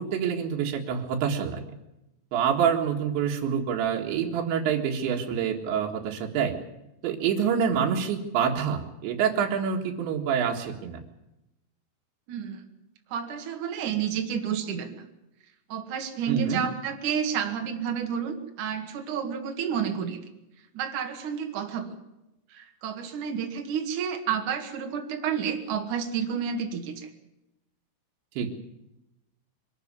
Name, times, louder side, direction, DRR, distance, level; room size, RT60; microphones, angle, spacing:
voice 1, 0.0-1.6 2.3-6.5 7.0-11.0 16.3-16.7 28.4-28.5, right 7 dB, 80° right, 1 dB, 4.1 m, -26 dB
voice 2, 12.3-12.6 13.1-15.1 15.7-20.2 20.7-21.9 22.5-27.1, right 7 dB, 50° right, 4 dB, 3.0 m, -30 dB
23.5 x 13.0 x 9.6 m, 0.92 s
omnidirectional pair, 5.2 m